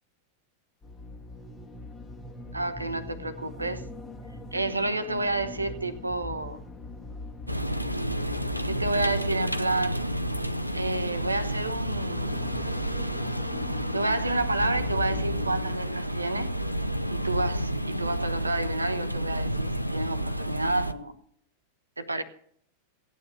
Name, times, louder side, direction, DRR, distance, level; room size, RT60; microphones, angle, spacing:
sound 1, 0.8-15.7, left 2 dB, 20° left, 1.6 m, -41 dB
voice 1, 2.5-3.9 4.5-6.6 8.7-10.1 10.7-12.5 13.7-16.6 17.1-21.2 22.0-22.2, right 2 dB, 80° right, 1.0 m, -30 dB
sound 2, 7.5-20.9, equal, 90° left, 0.6 m, -30 dB
16.5 x 9.3 x 5.6 m
figure-of-eight pair, 90°, 0 cm